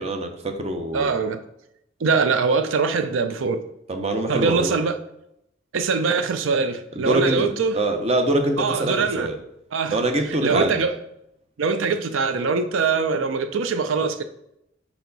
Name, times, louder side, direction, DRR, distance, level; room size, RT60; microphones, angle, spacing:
voice 1, 0.0-1.1 3.9-4.8 7.0-9.4 9.9-10.8, right 2 dB, 30° right, 0.7 m, -24 dB
voice 2, 0.9-1.4 2.0-3.6 4.3-5.0 5.7-7.7 8.6-9.3 9.7-10.0 10.3-10.9 11.6-14.2, right 4 dB, 90° right, 0.5 m, -22 dB
5.6 x 4.5 x 3.9 m
head